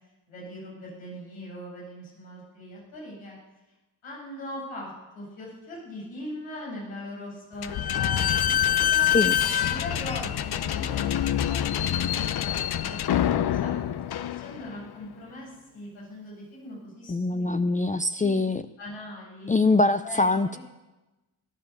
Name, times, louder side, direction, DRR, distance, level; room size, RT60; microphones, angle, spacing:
voice 1, 0.3-3.4 4.0-9.1 9.5-13.8 14.3-17.8 18.2-19.5 20.0-20.6, left 1 dB, 85° left, -5 dB, 7.9 m, -41 dB
Slam / Squeak, 7.6-14.9, left 10 dB, 60° left, 0.9 m, -26 dB
voice 2, 17.1-18.6 19.5-20.6, left 2 dB, 15° left, 10 dB, 0.7 m, -23 dB
18.5 x 10.5 x 7.1 m, 1.1 s
supercardioid pair, 45°, 44 cm